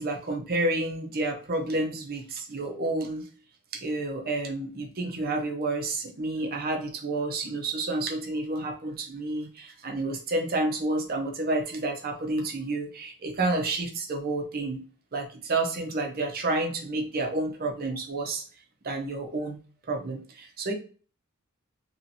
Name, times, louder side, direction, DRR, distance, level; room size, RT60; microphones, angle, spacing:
voice 1, 0.0-3.3 3.7-14.8 15.1-18.4 18.8-19.6 19.9-20.7, right 2 dB, 45° right, 2 dB, 0.7 m, -30 dB
3.1 x 2.8 x 2.7 m, 0.39 s
head